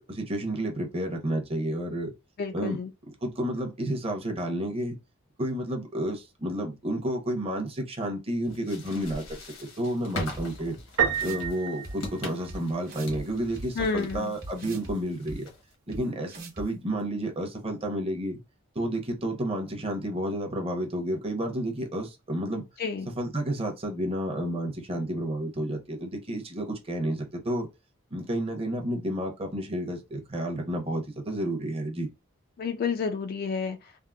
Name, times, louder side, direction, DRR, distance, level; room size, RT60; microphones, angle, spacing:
voice 1, 0.0-2.1 2.5-2.8 3.2-5.0 5.4-10.8 11.2-15.5 15.9-18.4 18.7-22.7 23.1-27.7 28.1-32.1, right 1 dB, 25° right, 0.8 m, -31 dB
voice 2, 2.4-2.9 13.8-14.3 22.8-23.1 32.6-33.9, left 5 dB, 45° left, 0.3 m, -30 dB
sound 1, 8.4-15.7, left 2 dB, 85° left, 1.1 m, -42 dB
sound 2, 10.3-10.4 11.0-11.5 11.8-11.9 12.5-12.6 12.9-13.2 13.6-14.9 15.3-15.4 15.9-16.0 16.3-16.7, right 1 dB, 45° right, 1.1 m, -39 dB
Piano, 11.0-12.8, right 8 dB, 85° right, 0.7 m, -29 dB
3.5 x 2.0 x 2.3 m
head